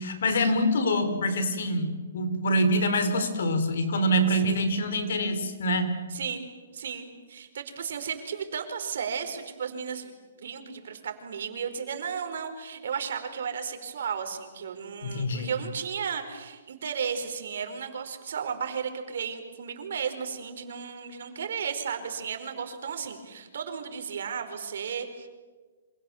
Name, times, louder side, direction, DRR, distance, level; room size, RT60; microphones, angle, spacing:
voice 1, 0.0-6.0 15.0-15.5, equal, 65° left, 9 dB, 4.8 m, -25 dB
voice 2, 4.3-4.6 6.1-6.5 6.7-25.3, right 7 dB, 65° right, 6 dB, 4.9 m, -34 dB
29.5 x 26.5 x 7.4 m, 1.4 s
hypercardioid pair, 165°, 0 cm